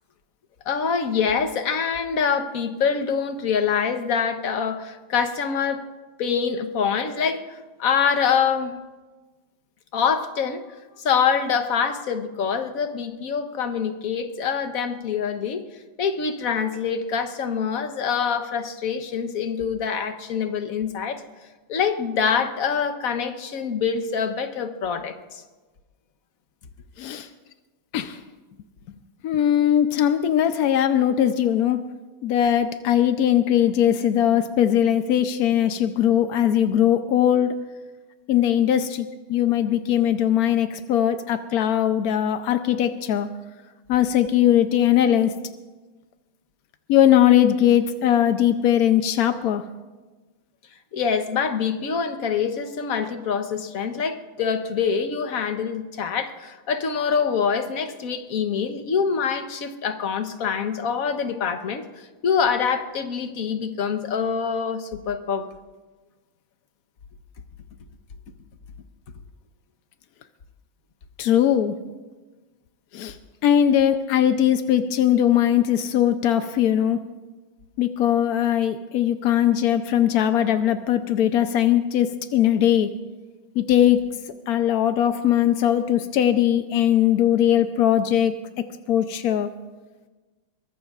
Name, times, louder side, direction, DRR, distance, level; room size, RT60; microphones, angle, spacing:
voice 1, 0.6-5.8 6.2-8.8 9.9-15.6 16.0-21.2 21.7-25.4 50.9-61.9 62.2-65.5, left 6 dB, 50° left, 7 dB, 1.2 m, -25 dB
voice 2, 27.0-27.3 27.9-28.2 29.2-31.8 32.2-37.5 38.3-43.3 43.9-45.3 46.9-49.6 71.2-71.8 72.9-73.2 73.4-77.0 77.8-82.9 83.6-84.1 84.5-88.4 88.9-89.5, left 10 dB, 75° left, 9 dB, 0.8 m, -20 dB
23.0 x 20.5 x 2.4 m, 1.3 s
omnidirectional pair, 2.2 m